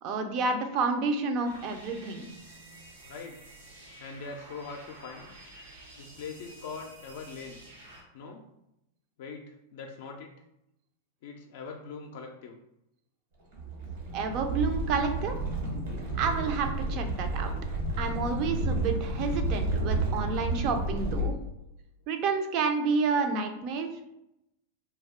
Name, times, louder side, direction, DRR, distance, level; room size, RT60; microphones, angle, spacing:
voice 1, 0.0-2.3 14.1-15.4 16.1-17.5 18.0-21.3 22.1-23.9, right 4 dB, 50° right, 6 dB, 0.4 m, -29 dB
sound 1, 1.4-8.0, right 2 dB, 90° right, 0.9 m, -50 dB
voice 2, 3.0-3.4 4.0-5.3 6.0-7.6 8.1-8.4 9.2-10.3 11.2-12.6 17.9-18.0, left 5 dB, 65° left, 2 dB, 0.4 m, -42 dB
sound 2, 13.5-21.2, right 2 dB, 70° right, 1.2 m, -31 dB
2.3 x 2.2 x 3.5 m, 0.85 s
hypercardioid pair, 110°, 0 cm